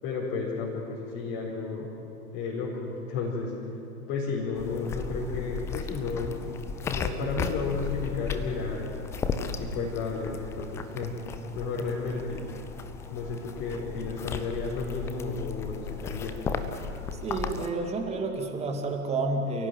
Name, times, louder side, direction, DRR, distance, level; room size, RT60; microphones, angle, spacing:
voice 1, 0.0-1.9 2.3-3.5 4.1-6.3 6.8-8.9 9.5-11.1 11.5-12.5 13.1-16.4, left 4 dB, 30° left, -6 dB, 4.9 m, -32 dB
sound 1, 4.5-17.7, left 5 dB, 5° left, 0.5 m, -35 dB
voice 2, 17.2-19.7, right 3 dB, 15° right, 3 dB, 2.4 m, -30 dB
28.5 x 17.0 x 9.3 m, 3.0 s
figure-of-eight pair, 110°, 45 cm